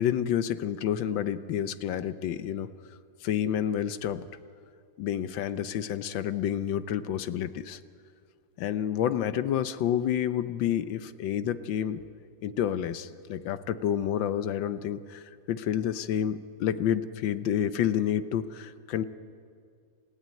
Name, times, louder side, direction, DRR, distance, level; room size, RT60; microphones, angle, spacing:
voice 1, 0.0-2.7 3.2-4.3 5.0-7.8 8.6-12.0 12.4-19.0, left 9 dB, 85° left, 13 dB, 1.5 m, -29 dB
28.0 x 16.0 x 9.2 m, 2.3 s
omnidirectional pair, 2.0 m